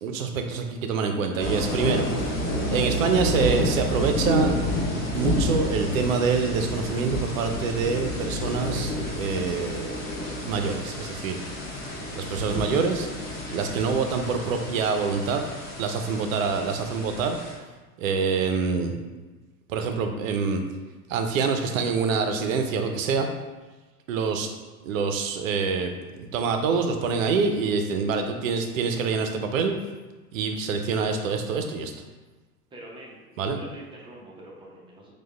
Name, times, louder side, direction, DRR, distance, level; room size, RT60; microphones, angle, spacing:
voice 1, 0.0-2.4 2.7-4.6 5.1-10.0 10.4-11.4 12.1-13.1 13.5-15.5 15.8-17.4 18.0-19.0 19.7-20.6 21.1-23.3 24.1-24.5 24.8-25.9 26.3-29.7 30.3-31.9 33.4-33.6, right 5 dB, 60° right, 5 dB, 0.6 m, -26 dB
sound 1, 1.4-17.5, left 1 dB, 20° left, 1.3 m, -30 dB
voice 2, 32.7-35.1, right 1 dB, 10° right, -3 dB, 0.6 m, -45 dB
6.1 x 2.4 x 2.3 m, 1.2 s
figure-of-eight pair, 95°, 47 cm